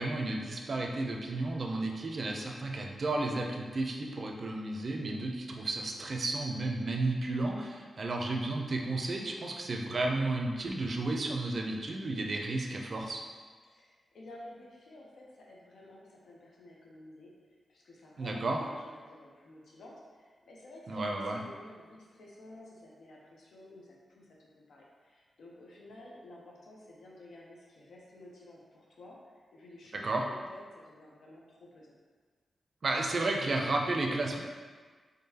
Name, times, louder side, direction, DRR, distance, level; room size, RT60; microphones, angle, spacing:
voice 1, 0.0-13.2 18.2-18.6 20.9-21.4 30.0-30.2 32.8-34.4, right 2 dB, 45° right, 1 dB, 0.4 m, -32 dB
voice 2, 13.7-17.3 17.7-29.2 29.5-31.9, left 1 dB, 85° left, -3 dB, 0.8 m, -52 dB
3.7 x 3.4 x 2.8 m, 1.5 s
wide cardioid pair, 145°, 0 cm